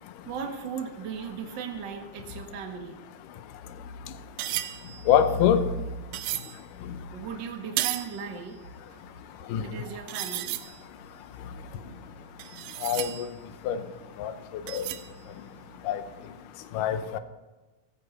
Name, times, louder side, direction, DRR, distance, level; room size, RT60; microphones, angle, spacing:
voice 1, 0.2-3.0 7.1-8.7 9.6-10.6, right 6 dB, 55° right, 1.2 m, -37 dB
sound 1, 4.2-6.6 7.2-8.2 8.5-8.6 9.3-9.4 9.5-9.7 10.1-10.8 11.4-13.8 14.7-15.3 15.6-15.9, right 14 dB, 80° right, 2.0 m, -34 dB
voice 2, 5.1-5.7 9.5-9.7 12.8-13.3 13.7-13.8 14.2-14.3 14.7-14.8 15.9-16.0 16.7-17.2, left 9 dB, 75° left, 2.2 m, -23 dB
15.5 x 14.5 x 4.2 m
omnidirectional pair, 4.3 m